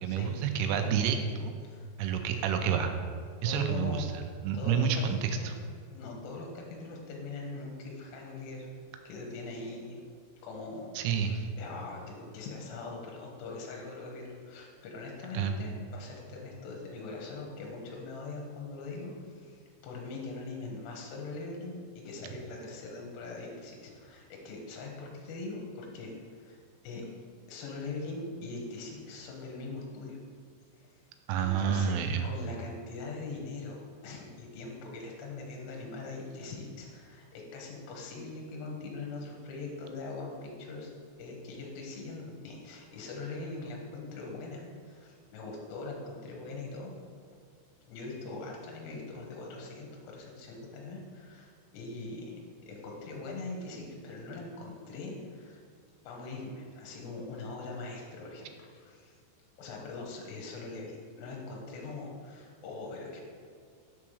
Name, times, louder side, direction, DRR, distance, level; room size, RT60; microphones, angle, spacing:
voice 1, 0.0-1.5 2.0-2.9 3.4-5.5 11.0-11.5 15.3-15.6 31.3-32.3, right 7 dB, 85° right, 6 dB, 3.0 m, -29 dB
voice 2, 3.4-4.1 4.5-5.5 5.9-8.7 9.0-10.0 10.4-10.9 11.6-26.6 26.8-27.0 27.5-30.2 30.8-30.9 31.4-40.9 41.2-46.9 47.9-52.4 52.6-55.6 56.0-59.1 59.6-63.2, left 3 dB, 70° left, -1 dB, 3.0 m, -42 dB
7.3 x 3.5 x 6.2 m, 2.1 s
omnidirectional pair, 5.7 m